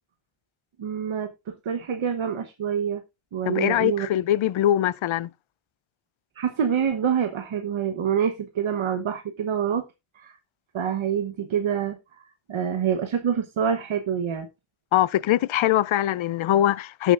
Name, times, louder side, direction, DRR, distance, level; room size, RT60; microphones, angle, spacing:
voice 1, 0.8-3.0 3.3-4.1 6.3-9.8 10.1-10.4 10.7-14.5, right 8 dB, 85° right, 1.1 m, -26 dB
voice 2, 3.5-5.3 14.9-17.1, left 12 dB, 80° left, 0.5 m, -22 dB
17.5 x 7.1 x 2.5 m
wide cardioid pair, 170°, 46 cm